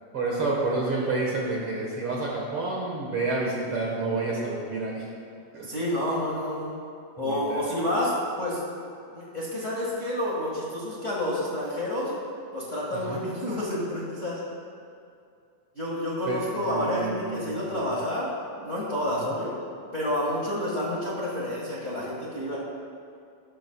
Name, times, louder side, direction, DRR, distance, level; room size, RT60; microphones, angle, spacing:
voice 1, 0.1-5.0 5.5-5.7 7.2-7.6 13.0-13.2 16.3-18.0 19.2-19.3, right 3 dB, 50° right, -3 dB, 2.0 m, -29 dB
voice 2, 5.6-6.7 7.2-8.1 8.4-8.6 9.1-12.1 12.5-14.4 15.7-18.3 18.6-19.5 19.9-22.6, left 1 dB, 30° left, -6 dB, 1.7 m, -29 dB
17.0 x 12.5 x 2.3 m, 2.4 s
omnidirectional pair, 3.7 m